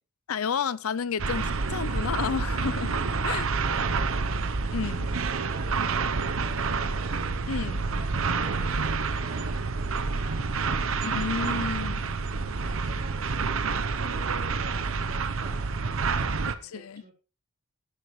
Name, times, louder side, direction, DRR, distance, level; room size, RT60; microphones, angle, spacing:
voice 1, 0.3-2.9 3.2-3.5 4.7-5.1 7.5-7.8 11.0-12.1 16.6-17.0, left 6 dB, 75° left, 0.5 m, -31 dB
sound 1, 1.2-16.6, right 4 dB, 65° right, 0.9 m, -28 dB
voice 2, 4.9-5.8 6.1-7.1 7.5-7.6 8.0-10.8 11.9-13.5 13.9-15.6 15.8-17.1, right 3 dB, 45° right, 3.8 m, -49 dB
13.5 x 11.0 x 3.2 m
head